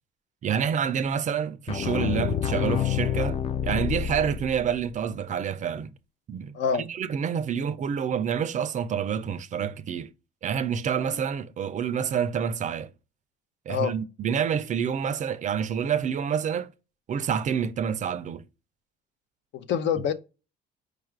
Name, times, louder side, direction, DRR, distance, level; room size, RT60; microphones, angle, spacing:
voice 1, 0.4-5.9 6.3-10.1 10.4-12.9 13.7-16.7 17.1-18.4, right 7 dB, 40° right, 0.4 m, -28 dB
sound 1, 1.7-4.8, left 9 dB, 30° left, 0.4 m, -28 dB
voice 2, 6.5-6.9 11.0-11.2 13.7-13.9 19.5-20.1, left 7 dB, 65° left, 0.6 m, -26 dB
4.9 x 2.4 x 4.5 m
cardioid pair, 125°, 20 cm